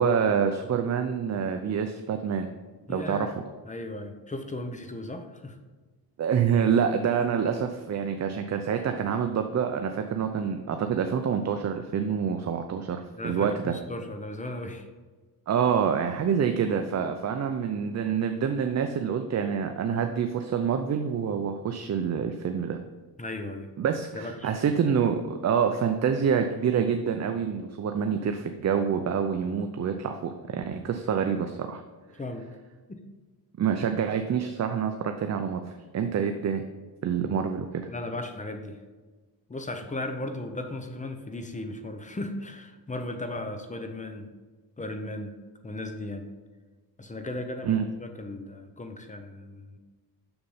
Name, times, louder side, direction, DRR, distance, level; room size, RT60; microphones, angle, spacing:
voice 1, 0.0-2.5 2.9-3.3 6.2-13.7 15.5-22.8 23.8-31.8 33.6-36.6 37.0-37.7 47.6-47.9, right 7 dB, 40° right, 6 dB, 0.6 m, -27 dB
voice 2, 2.9-3.3 3.6-5.6 13.2-14.9 23.2-23.7 24.1-24.5 32.2-32.5 32.9-33.0 37.9-38.8 39.5-44.3 44.8-45.3 45.6-46.3 47.0-49.8, left 2 dB, 20° left, 6 dB, 0.8 m, -36 dB
7.0 x 6.5 x 5.6 m, 1.3 s
cardioid pair, 135°, 40 cm